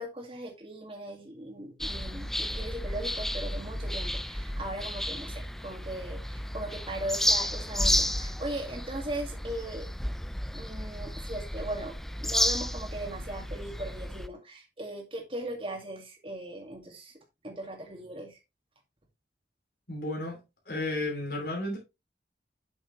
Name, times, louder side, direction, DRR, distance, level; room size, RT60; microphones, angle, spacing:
voice 1, 0.0-9.9 10.5-11.9 12.2-18.4, right 1 dB, 30° right, 2.1 m, -39 dB
sound 1, 1.8-14.3, left 1 dB, ahead, 0.3 m, -32 dB
voice 2, 19.9-20.4 20.7-21.8, left 2 dB, 55° left, 2.9 m, -32 dB
7.9 x 6.2 x 3.1 m
head